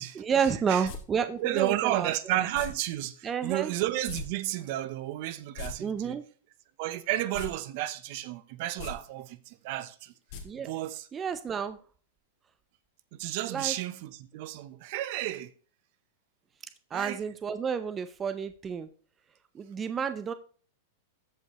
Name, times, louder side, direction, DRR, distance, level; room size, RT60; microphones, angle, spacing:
voice 1, 0.2-2.1 3.2-3.7 5.8-6.2 10.4-10.7 11.1-11.8 13.5-13.7 16.9-18.9 19.5-20.3, right 7 dB, 20° right, 0.6 m, -30 dB
sound 1, 0.8-1.0 2.5-2.7 4.1-4.2 4.5-4.6 5.4-5.7 7.3-7.5 7.9-8.0 8.7-8.9 10.3-10.4 10.7-10.8, left 6 dB, 60° left, 2.3 m, -38 dB
voice 2, 1.4-6.2 6.8-10.1 10.6-11.1 13.2-15.5 16.9-17.2, right 14 dB, 55° right, 0.8 m, -32 dB
14.0 x 5.3 x 3.0 m
hypercardioid pair, 125°, 0 cm